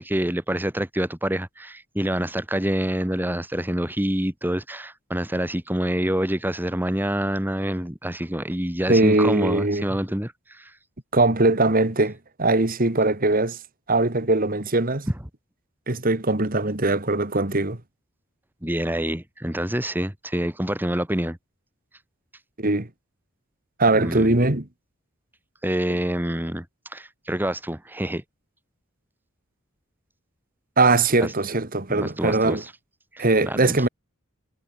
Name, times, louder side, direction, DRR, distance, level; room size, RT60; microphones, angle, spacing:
voice 1, 0.0-10.7 18.6-21.4 24.0-24.4 25.6-28.2 31.2-31.3 31.9-32.7 33.1-33.7, right 1 dB, 10° right, 1.9 m, -27 dB
voice 2, 8.9-9.9 11.1-13.6 13.9-15.1 15.9-17.8 22.6-22.9 23.8-24.7 30.8-32.6 33.2-33.9, right 2 dB, 40° right, 2.1 m, -21 dB
head